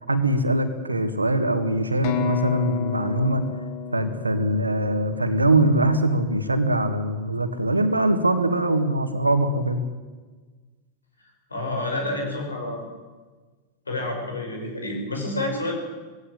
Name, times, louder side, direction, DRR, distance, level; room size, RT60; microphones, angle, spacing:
voice 1, 0.1-3.4 3.9-9.8, right 1 dB, 80° right, 9 dB, 1.9 m, -22 dB
sound 1, 2.0-5.8, left 8 dB, 45° left, 1.6 m, -31 dB
voice 2, 11.5-12.9 13.9-15.7, left 2 dB, 80° left, 2 dB, 6.1 m, -29 dB
19.0 x 16.5 x 9.1 m, 1.3 s
figure-of-eight pair, 90°, 0 cm